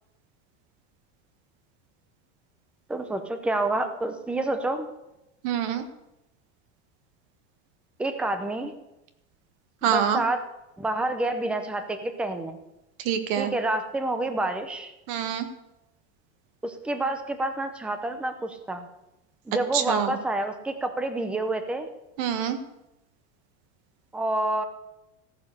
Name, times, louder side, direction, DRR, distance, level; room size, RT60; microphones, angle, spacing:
voice 1, 2.9-4.9 8.0-8.7 9.8-10.4 10.8-12.6 13.4-14.9 16.6-18.9 19.5-21.9 24.1-24.6, right 2 dB, 5° right, 8 dB, 0.7 m, -28 dB
voice 2, 5.4-5.8 9.8-10.2 13.0-13.5 15.1-15.5 19.7-20.2 22.2-22.6, right 9 dB, 55° right, 9 dB, 1.5 m, -26 dB
15.0 x 9.6 x 6.5 m, 0.91 s
cardioid pair, 175°, 34 cm